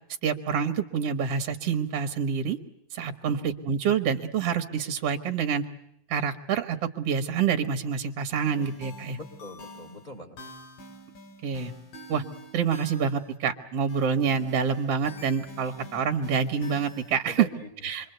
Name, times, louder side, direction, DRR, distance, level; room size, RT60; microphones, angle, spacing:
voice 1, 0.2-2.6 2.9-5.6 6.1-9.2 11.4-11.7 12.1-12.2 12.5-17.5 17.8-18.1, right 6 dB, 50° right, 5 dB, 2.2 m, -27 dB
voice 2, 3.2-3.5 8.6-8.7 9.1-10.4 17.2-18.1, equal, 10° left, 4 dB, 3.0 m, -42 dB
sound 1, 8.3-13.3 13.9-17.2, equal, 70° left, 6.7 m, -47 dB
27.5 x 23.5 x 8.0 m, 0.73 s
omnidirectional pair, 4.2 m